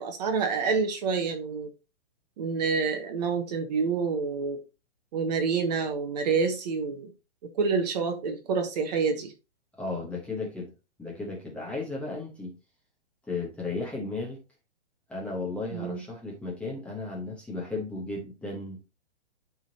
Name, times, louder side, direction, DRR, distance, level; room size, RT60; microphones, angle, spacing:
voice 1, 0.0-1.7 2.4-4.6 5.1-7.1 7.5-9.3 15.7-16.0, right 5 dB, 35° right, 1.0 m, -28 dB
voice 2, 9.8-10.7 11.0-12.5 13.3-14.4 15.1-18.8, left 3 dB, 5° left, 1.0 m, -34 dB
10.5 x 3.7 x 2.8 m
hypercardioid pair, 160°, 34 cm